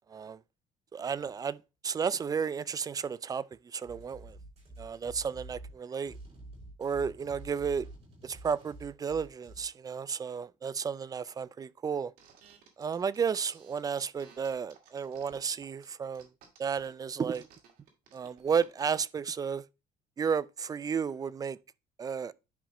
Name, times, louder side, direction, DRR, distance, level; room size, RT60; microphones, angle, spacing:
voice 1, 0.1-0.4 0.9-1.6 1.8-4.4 4.8-6.1 6.8-7.9 8.2-12.1 12.8-16.3 16.6-17.5 18.1-19.6 20.2-21.6 22.0-22.3, right 6 dB, 25° right, 0.3 m, -33 dB
sound 1, 3.8-9.6, right 2 dB, 45° right, 5.2 m, -48 dB
sound 2, 12.2-18.9, right 7 dB, 75° right, 2.0 m, -58 dB
10.5 x 4.9 x 3.0 m
cardioid pair, 115°, 15 cm